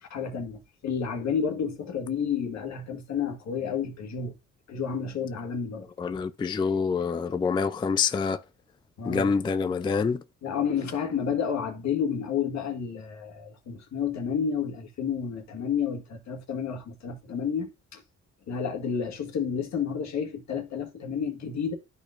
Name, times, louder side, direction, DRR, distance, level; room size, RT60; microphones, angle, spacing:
voice 1, 0.0-4.3 4.7-5.9 9.0-9.3 10.4-18.0 18.5-21.7, left 7 dB, 65° left, 1.6 m, -30 dB
voice 2, 6.0-8.4 9.0-10.2, left 5 dB, 15° left, 0.3 m, -26 dB
12.5 x 4.3 x 2.5 m
cardioid pair, 90°, 30 cm